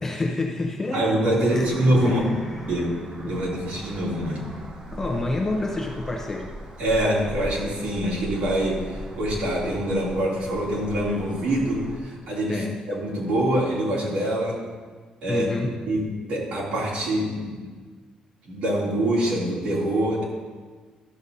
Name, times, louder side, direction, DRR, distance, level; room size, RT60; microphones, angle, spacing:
voice 1, 0.0-1.1 1.4-2.5 3.2-3.4 4.9-6.5 12.5-12.8 15.3-15.7, left 2 dB, 20° left, 1 dB, 0.7 m, -29 dB
voice 2, 0.9-2.2 2.7-4.4 6.8-14.6 15.2-15.5 15.9-17.6 18.4-20.2, right 1 dB, 70° right, -6 dB, 2.7 m, -25 dB
sound 1, 1.5-12.0, right 1 dB, 35° right, 0.9 m, -38 dB
12.5 x 6.8 x 2.7 m, 1.5 s
cardioid pair, 175°, 2 cm